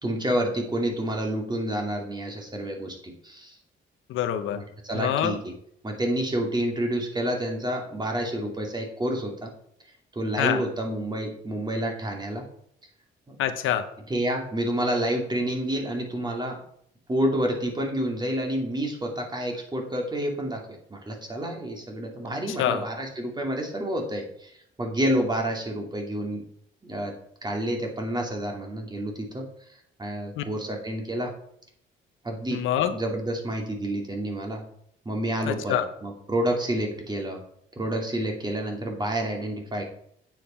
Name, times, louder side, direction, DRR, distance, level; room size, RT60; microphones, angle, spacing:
voice 1, 0.0-3.6 4.5-5.5 5.8-9.5 10.1-12.5 13.3-13.4 14.1-16.6 17.1-26.5 26.8-27.1 27.4-29.4 30.0-31.3 32.2-32.6 32.9-34.7 35.0-37.4 37.8-39.8, right 1 dB, 20° right, 1 dB, 2.6 m, -29 dB
voice 2, 4.1-4.6 4.9-5.3 10.4-10.6 13.4-13.9 22.5-22.8 30.4-30.5 32.5-32.9 35.5-35.9, left 10 dB, 85° left, 9 dB, 1.0 m, -25 dB
8.9 x 7.7 x 4.4 m, 0.70 s
cardioid pair, 90°, 20 cm